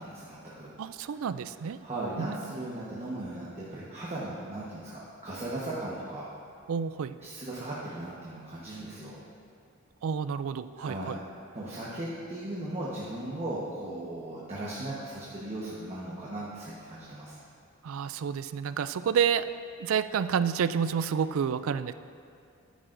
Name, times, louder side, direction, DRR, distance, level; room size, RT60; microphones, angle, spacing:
voice 1, 0.0-0.7 1.8-6.2 7.2-9.2 10.8-11.1 11.5-17.4, right 1 dB, 30° right, -7 dB, 1.2 m, -37 dB
voice 2, 0.8-1.8 2.2-2.3 6.7-7.1 10.0-11.2 17.8-19.5 19.8-21.9, right 7 dB, 70° right, 14 dB, 0.3 m, -29 dB
13.5 x 10.0 x 2.6 m, 2.4 s
head